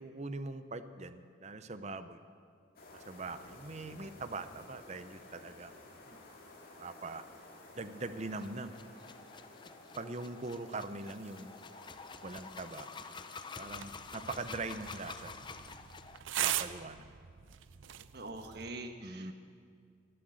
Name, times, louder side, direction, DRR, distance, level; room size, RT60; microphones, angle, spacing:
voice 1, 0.0-2.2 3.0-5.7 6.1-6.2 6.8-7.2 7.8-8.7 10.0-11.5 12.2-12.9 13.6-15.5 16.4-17.0 19.0-19.3, right 3 dB, 35° right, 11 dB, 0.7 m, -42 dB
sound 1, 2.8-17.0, left 2 dB, 50° left, 2.3 m, -56 dB
sound 2, 8.3-16.2, left 4 dB, 25° left, 0.5 m, -49 dB
sound 3, 13.7-18.7, right 11 dB, 85° right, 0.6 m, -40 dB
voice 2, 18.1-19.3, right 2 dB, 55° right, 5 dB, 1.4 m, -44 dB
23.0 x 7.8 x 7.9 m, 2.2 s
head